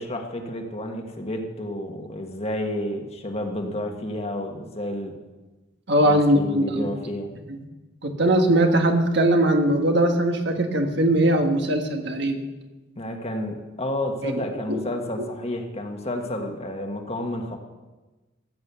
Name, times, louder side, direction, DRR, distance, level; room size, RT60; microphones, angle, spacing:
voice 1, 0.0-5.2 6.0-7.3 12.9-17.6, left 1 dB, 35° left, 3 dB, 1.5 m, -30 dB
voice 2, 5.9-6.9 7.5-7.6 8.0-12.4 14.2-14.3 14.7-14.8 15.2-15.3, right 1 dB, 60° right, 4 dB, 1.5 m, -20 dB
15.0 x 8.9 x 6.9 m, 1.2 s
head